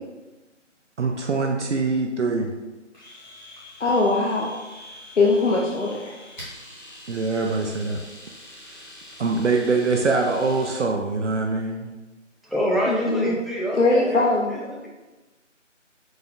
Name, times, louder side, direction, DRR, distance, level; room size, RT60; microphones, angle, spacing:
voice 1, 1.0-2.5 7.1-8.0 9.2-11.9, right 3 dB, 65° right, 1 dB, 0.5 m, -23 dB
Domestic sounds home sounds, 2.9-10.9, left 1 dB, 35° left, 1.1 m, -44 dB
voice 2, 3.8-4.5 5.2-6.1 12.9-13.4 13.7-14.5, left 3 dB, 65° left, -2 dB, 0.6 m, -21 dB
voice 3, 12.4-14.9, equal, ahead, -6 dB, 0.4 m, -27 dB
4.1 x 2.2 x 3.7 m, 1.2 s
figure-of-eight pair, 175°, 38 cm